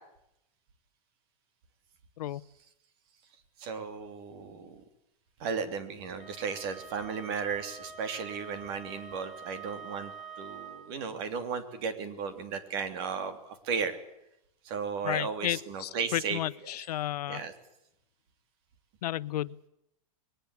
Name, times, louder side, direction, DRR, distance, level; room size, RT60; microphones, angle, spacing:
voice 1, 3.6-4.8 5.4-14.0 14.6-16.8 17.3-17.5, right 5 dB, 40° right, 10 dB, 3.2 m, -35 dB
Wind instrument woodwind instrument, 6.2-10.9, right 5 dB, ahead, 3.4 m, -46 dB
voice 2, 15.0-17.4 19.0-19.7, left 13 dB, 75° left, 18 dB, 0.9 m, -33 dB
22.0 x 19.5 x 8.4 m, 0.82 s
supercardioid pair, 180°, 20 cm